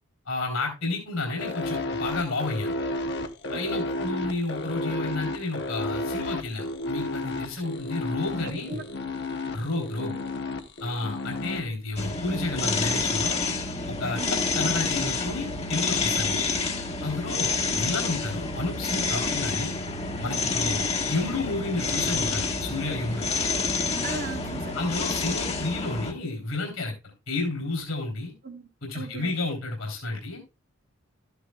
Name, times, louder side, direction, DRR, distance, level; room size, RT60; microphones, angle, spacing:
voice 1, 0.2-2.7 3.5-8.8 9.5-10.2 10.8-13.4 13.9-16.5 17.0-19.7 20.2-23.3 24.7-28.3 28.8-30.4, left 2 dB, 75° left, 3.4 m, -31 dB
sound 1, 1.4-11.6, left 2 dB, 55° left, 1.1 m, -32 dB
voice 2, 3.5-3.8 8.4-8.8 10.1-10.2 12.3-12.5 14.1-14.4 20.6-20.8 24.0-24.8 28.4-28.7 28.9-29.3, right 4 dB, 45° right, 0.9 m, -38 dB
sound 2, 12.0-26.1, left 4 dB, 30° left, 1.4 m, -28 dB
13.5 x 9.4 x 2.3 m
head